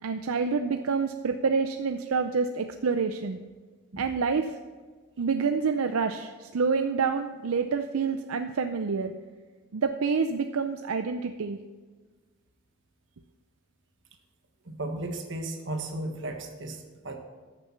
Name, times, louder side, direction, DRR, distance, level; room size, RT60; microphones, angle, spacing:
voice 1, 0.0-3.4 4.0-4.6 5.2-9.1 9.7-11.6, right 5 dB, 80° right, 8 dB, 0.5 m, -27 dB
voice 2, 14.6-17.2, right 1 dB, 60° right, 4 dB, 1.5 m, -35 dB
14.0 x 6.9 x 5.7 m, 1.4 s
head